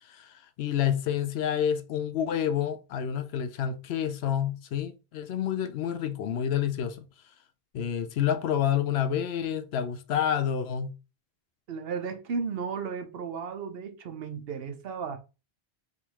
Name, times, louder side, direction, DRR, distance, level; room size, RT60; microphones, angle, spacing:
voice 1, 0.1-7.1 7.7-10.9, left 9 dB, 85° left, 0.8 m, -28 dB
voice 2, 11.7-15.2, right 5 dB, 70° right, 0.9 m, -34 dB
3.5 x 2.5 x 4.5 m
omnidirectional pair, 1.1 m